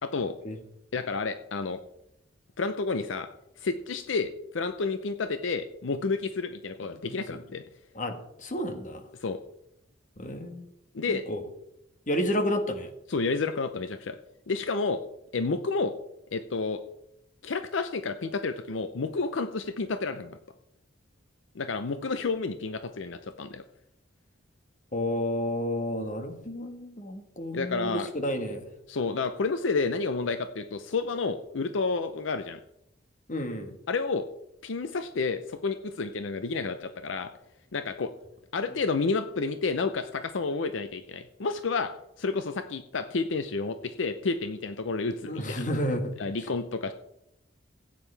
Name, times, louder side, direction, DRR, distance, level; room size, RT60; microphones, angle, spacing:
voice 1, 0.0-0.3 0.9-1.8 2.6-3.3 3.6-7.6 9.2-9.4 10.9-11.2 13.1-14.2 14.5-15.0 15.3-15.9 16.3-16.8 17.4-20.4 21.5-23.6 27.5-28.1 28.9-32.6 33.9-34.3 34.6-37.3 37.7-38.1 38.5-45.6 46.2-46.9, left 4 dB, 75° left, 10 dB, 0.6 m, -30 dB
voice 2, 7.1-7.4 7.9-9.0 10.2-10.7 11.1-11.4 12.1-12.9 24.9-28.7 33.3-33.8 45.2-46.1, equal, 40° left, 6 dB, 1.5 m, -31 dB
15.5 x 9.2 x 3.4 m, 0.81 s
head